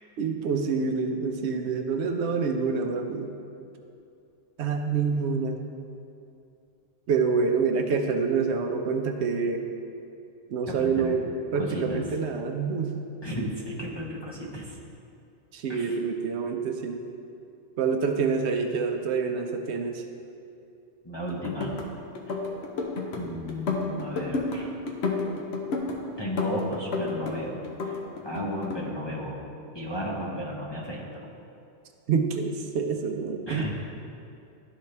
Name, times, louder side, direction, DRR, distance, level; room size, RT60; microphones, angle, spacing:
voice 1, 0.2-3.3 4.6-5.6 7.1-9.6 10.5-11.3 11.5-13.1 15.5-17.0 17.8-20.0 32.1-33.7, right 5 dB, 70° right, 5 dB, 0.8 m, -27 dB
voice 2, 10.7-11.2 11.5-12.0 13.2-14.8 15.7-16.0 21.0-21.7 22.3-22.4 23.2-24.7 26.2-28.0 28.2-29.4 29.7-31.3 33.5-33.7, equal, 25° left, -4 dB, 0.7 m, -34 dB
sound 1, 21.3-21.9 22.2-23.2 23.5-24.6 24.9-26.0 26.4-27.4 27.6-28.8, left 4 dB, 70° left, 1.0 m, -30 dB
11.5 x 4.0 x 3.2 m, 2.6 s
omnidirectional pair, 1.2 m